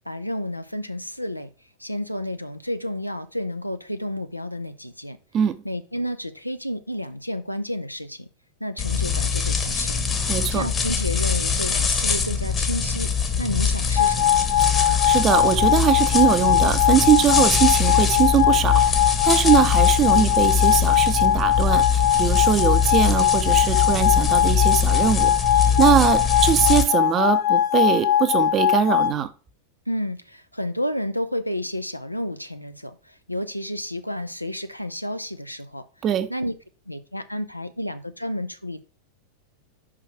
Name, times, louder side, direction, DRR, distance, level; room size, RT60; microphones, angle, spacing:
voice 1, 0.1-1.5 1.8-5.2 5.6-8.3 8.6-10.0 10.5-13.1 13.4-14.5 29.9-35.8 36.3-36.5 36.9-38.8, left 1 dB, 90° left, 0.6 m, -31 dB
sound 1, 8.8-26.8, left 6 dB, 20° left, 1.1 m, -23 dB
voice 2, 10.3-10.6 14.7-25.3 25.8-29.3 36.0-36.3, right 10 dB, 30° right, 0.7 m, -21 dB
sound 2, 14.0-29.1, left 11 dB, 45° left, 0.9 m, -20 dB
5.5 x 4.9 x 5.8 m
figure-of-eight pair, 90°, 0 cm